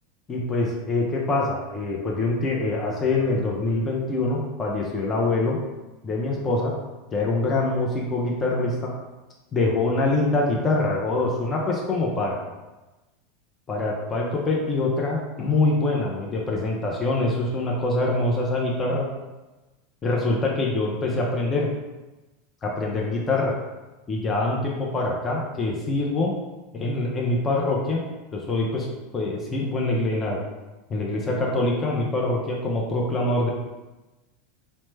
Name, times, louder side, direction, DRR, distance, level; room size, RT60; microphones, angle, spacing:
voice 1, 0.3-5.6 6.0-6.7 7.1-8.9 9.5-12.4 13.7-19.1 20.0-21.7 22.6-23.5 24.1-26.3 26.7-28.0 28.3-28.9 29.1-30.4 30.9-33.5, left 2 dB, 25° left, -3 dB, 0.5 m, -24 dB
3.1 x 2.1 x 3.2 m, 1.1 s
hypercardioid pair, 110°, 0 cm